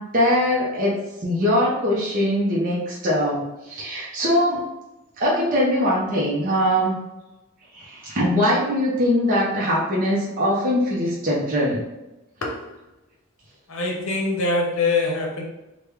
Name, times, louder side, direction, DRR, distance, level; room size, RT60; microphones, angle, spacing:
voice 1, 0.0-4.6 5.2-7.0 7.7-11.8, equal, 40° right, -5 dB, 0.6 m, -22 dB
voice 2, 13.7-15.4, left 3 dB, 70° left, 0 dB, 0.7 m, -23 dB
3.5 x 2.2 x 3.0 m, 1.0 s
head